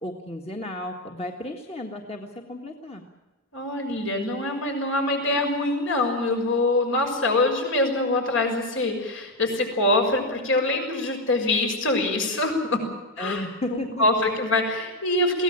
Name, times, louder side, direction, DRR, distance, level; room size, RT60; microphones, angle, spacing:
voice 1, 0.0-3.0 13.2-14.4, left 1 dB, 30° left, 2 dB, 1.7 m, -34 dB
voice 2, 3.5-12.8 13.2-13.5 13.7-15.4, left 2 dB, 70° left, 3 dB, 6.3 m, -24 dB
23.0 x 17.0 x 8.9 m, 1.2 s
head